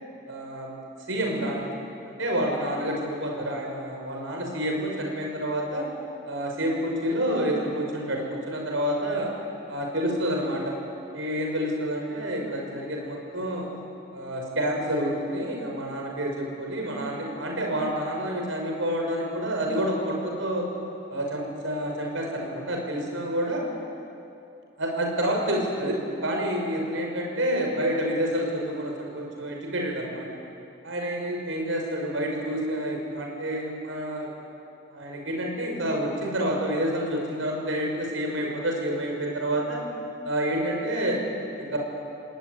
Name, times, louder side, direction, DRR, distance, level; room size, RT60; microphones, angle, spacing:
voice 1, 0.3-0.8 1.1-1.8 2.0-5.9 6.2-9.3 9.7-10.7 11.1-13.7 14.1-20.7 21.1-23.6 24.8-30.3 30.8-34.3 34.9-39.8 40.2-41.2 41.6-41.8, equal, 85° right, 1 dB, 6.3 m, -28 dB
28.0 x 19.5 x 9.7 m, 2.7 s
head